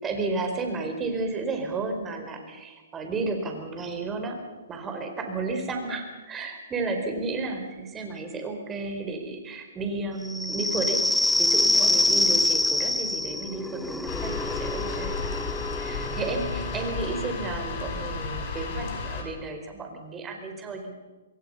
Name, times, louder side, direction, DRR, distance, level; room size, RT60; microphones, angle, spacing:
voice 1, 0.0-4.4 4.7-11.0 11.4-15.5 15.8-20.9, right 3 dB, 15° right, 4 dB, 4.7 m, -32 dB
sound 1, 10.3-17.5, left 2 dB, 5° left, 0.7 m, -26 dB
sound 2, 14.1-19.2, left 4 dB, 40° left, 5.9 m, -33 dB
26.5 x 22.0 x 5.7 m, 1.3 s
hypercardioid pair, 135°, 0 cm